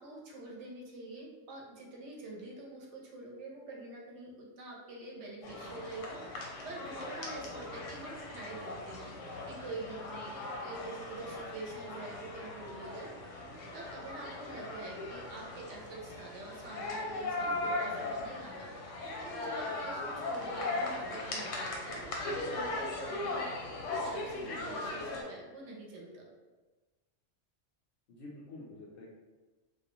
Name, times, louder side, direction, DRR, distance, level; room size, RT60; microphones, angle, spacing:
voice 1, 0.0-13.4 13.7-23.5 24.0-26.3, right 2 dB, 75° right, -2 dB, 0.9 m, -46 dB
sound 1, 5.4-25.2, left 2 dB, 85° left, 1.0 m, -39 dB
voice 2, 28.1-29.2, left 2 dB, 60° left, -5 dB, 0.6 m, -48 dB
2.3 x 2.2 x 2.9 m, 1.2 s
omnidirectional pair, 1.3 m